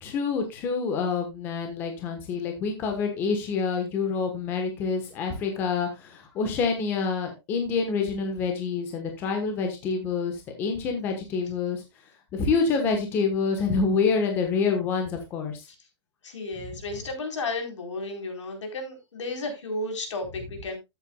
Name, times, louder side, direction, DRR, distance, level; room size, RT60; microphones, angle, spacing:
voice 1, 0.0-11.8 12.3-15.7, left 5 dB, 15° left, 1.2 m, -27 dB
voice 2, 16.2-20.8, left 2 dB, 80° left, 4.2 m, -33 dB
13.5 x 8.1 x 2.3 m
hypercardioid pair, 180°, 15 cm